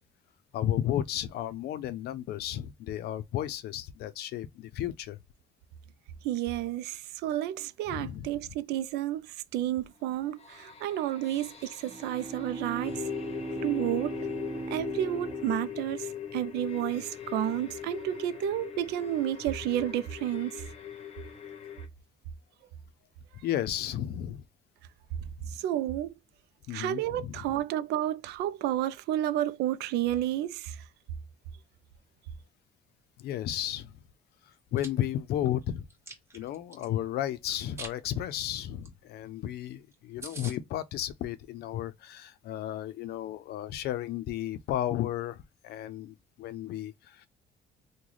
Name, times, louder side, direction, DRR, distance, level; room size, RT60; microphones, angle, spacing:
voice 1, 0.5-5.2 7.9-8.3 23.4-24.4 25.2-25.5 26.7-27.5 33.2-33.9 34.4-35.9 36.3-47.3, left 12 dB, 70° left, 0.5 m, -33 dB
voice 2, 6.2-13.1 13.6-14.2 14.7-20.6 25.5-26.1 26.7-30.8, right 12 dB, 80° right, 0.4 m, -31 dB
sound 1, 10.1-21.9, left 10 dB, 35° left, 0.8 m, -40 dB
Bowed string instrument, 11.8-16.4, right 2 dB, 30° right, 1.1 m, -39 dB
Chewing mastication, 34.5-34.9 35.4-36.9 37.5-38.0 38.3-38.5 38.8-38.9 39.2-39.3 39.6-39.7 39.9-40.0 40.2-40.6, right 3 dB, 15° right, 1.1 m, -44 dB
3.1 x 2.2 x 3.8 m
cardioid pair, 110°, 17 cm